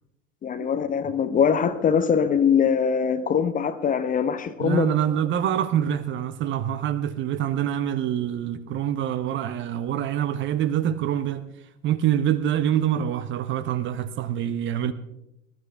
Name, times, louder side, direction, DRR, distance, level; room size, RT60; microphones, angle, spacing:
voice 1, 0.4-4.9, left 7 dB, 20° left, 0.8 m, -22 dB
voice 2, 4.6-11.5 11.8-14.9, right 10 dB, 30° right, 0.9 m, -25 dB
21.0 x 13.0 x 3.4 m
figure-of-eight pair, 80°, 39 cm